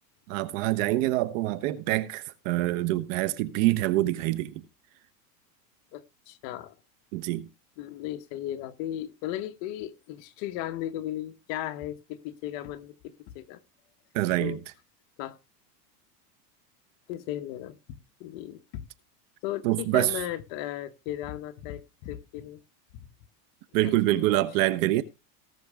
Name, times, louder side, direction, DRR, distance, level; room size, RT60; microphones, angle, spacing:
voice 1, 0.3-4.5 7.1-7.5 14.1-14.6 19.6-20.1 23.7-25.0, right 16 dB, 55° right, 1.2 m, -25 dB
voice 2, 5.9-6.7 7.8-13.6 14.3-14.6 15.2-15.4 17.1-17.8 18.2-18.8 19.4-22.6 23.8-24.4, left 13 dB, 45° left, 1.3 m, -36 dB
18.5 x 6.6 x 3.6 m
supercardioid pair, 155°, 48 cm